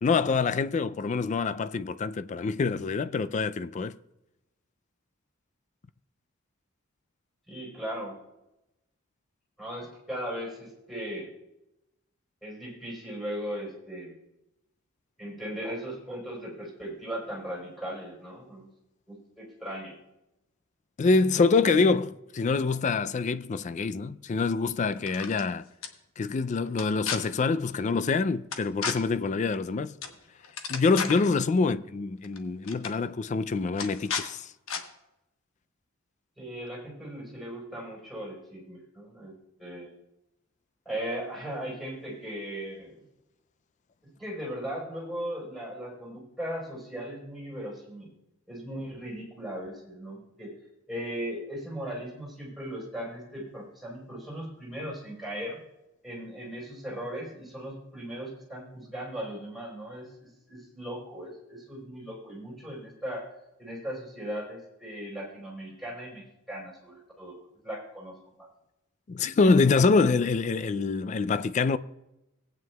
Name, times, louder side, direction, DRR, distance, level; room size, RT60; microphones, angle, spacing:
voice 1, 0.0-3.9 21.0-25.6 26.2-29.9 30.7-34.5 69.1-71.8, left 4 dB, 35° left, 0.3 m, -25 dB
voice 2, 7.5-8.2 9.6-11.3 12.4-14.1 15.2-18.7 19.1-19.9 36.4-39.3 39.6-39.9 40.9-42.9 44.2-48.1 48.5-50.5 50.9-55.6 56.0-63.2 63.6-67.3 67.6-68.5, equal, ahead, 4.2 m, -38 dB
weapon handling mechanical noises, 25.0-25.4 25.8-25.9 26.7-27.2 28.5-28.9 30.0-30.2 30.4-31.3 32.2-32.4 32.6-32.9 33.8-34.3 34.7-34.8, left 6 dB, 90° left, 1.1 m, -33 dB
18.5 x 9.1 x 2.3 m
head